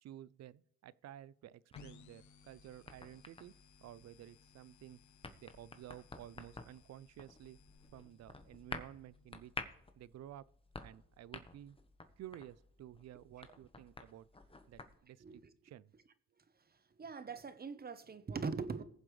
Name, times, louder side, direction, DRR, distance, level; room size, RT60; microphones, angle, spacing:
voice 1, 0.0-3.5 3.8-5.0 5.4-7.6 7.9-9.5 10.0-10.4 10.8-11.8 12.2-14.3 14.7-15.9, right 12 dB, 60° right, 0.5 m, -53 dB
sound 1, 1.7-9.3, left 5 dB, 70° left, 1.0 m, -63 dB
sound 2, 1.7-15.0, left 3 dB, 20° left, 1.2 m, -52 dB
voice 2, 17.0-18.8, right 5 dB, 30° right, 1.0 m, -41 dB
19.5 x 7.5 x 3.3 m
cardioid pair, 90°, 30 cm